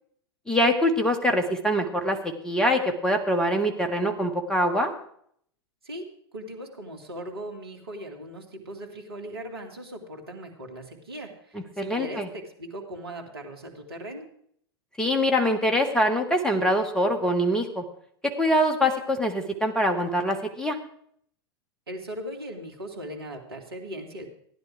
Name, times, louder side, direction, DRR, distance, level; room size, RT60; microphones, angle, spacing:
voice 1, 0.5-2.2 2.4-4.9 11.8-12.3 15.0-17.8 18.2-20.8, equal, 5° left, 4 dB, 1.7 m, -24 dB
voice 2, 6.3-14.3 21.9-24.3, equal, 70° right, 2 dB, 2.6 m, -39 dB
15.5 x 10.5 x 4.8 m, 0.66 s
figure-of-eight pair, 90°, 13 cm